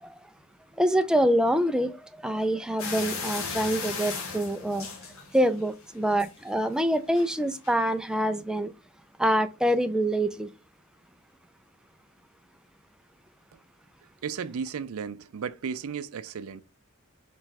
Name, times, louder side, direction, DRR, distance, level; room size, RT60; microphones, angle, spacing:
voice 1, 0.8-4.9 5.3-8.7 9.2-10.5, equal, 5° right, 0.3 m, -25 dB
sound 1, 2.8-5.7 6.0-6.5 7.2-7.3 7.6-7.7, left 5 dB, 75° left, 1.1 m, -35 dB
voice 2, 14.2-16.6, right 6 dB, 80° right, 0.4 m, -34 dB
3.3 x 3.1 x 4.7 m
head